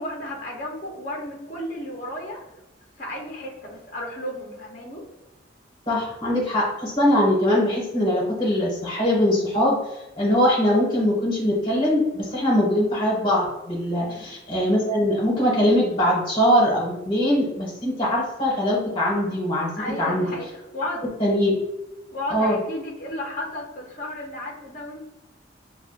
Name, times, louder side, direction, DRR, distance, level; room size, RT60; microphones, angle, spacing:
voice 1, 0.0-2.4 3.0-5.0 14.0-14.3 19.8-21.0 22.1-25.0, left 1 dB, 45° left, -2 dB, 0.8 m, -33 dB
voice 2, 5.9-9.8 10.2-19.7 20.0-20.3 21.2-21.6 22.3-22.6, equal, 25° left, -4 dB, 1.4 m, -22 dB
5.8 x 2.4 x 2.4 m, 0.94 s
head